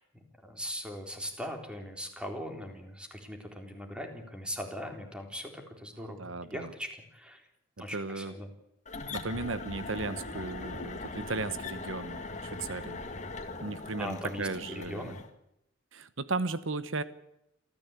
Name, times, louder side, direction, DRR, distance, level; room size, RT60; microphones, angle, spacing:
voice 1, 0.0-7.4 7.8-8.5 14.0-15.2, equal, 5° right, 4 dB, 3.8 m, -40 dB
voice 2, 6.0-6.7 7.9-8.3 9.1-13.0 13.6-15.1 15.9-17.0, right 3 dB, 75° right, 13 dB, 1.1 m, -36 dB
sound 1, 8.9-15.3, left 3 dB, 35° left, 2.1 m, -40 dB
28.0 x 14.0 x 8.3 m, 0.84 s
head